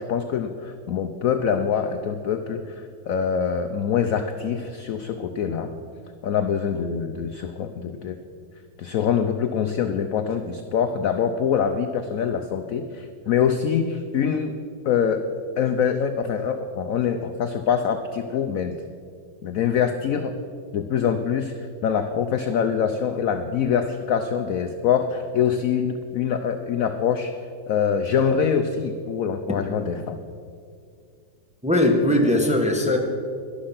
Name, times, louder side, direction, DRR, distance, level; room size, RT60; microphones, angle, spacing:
voice 1, 0.0-5.7 6.2-8.2 8.8-14.6 14.8-15.2 15.6-18.8 19.4-20.3 20.7-27.3 27.7-30.2, left 7 dB, 75° left, 8 dB, 0.7 m, -24 dB
voice 2, 31.6-33.0, left 1 dB, 5° right, 1 dB, 1.0 m, -19 dB
11.5 x 11.5 x 5.7 m, 2.3 s
omnidirectional pair, 2.1 m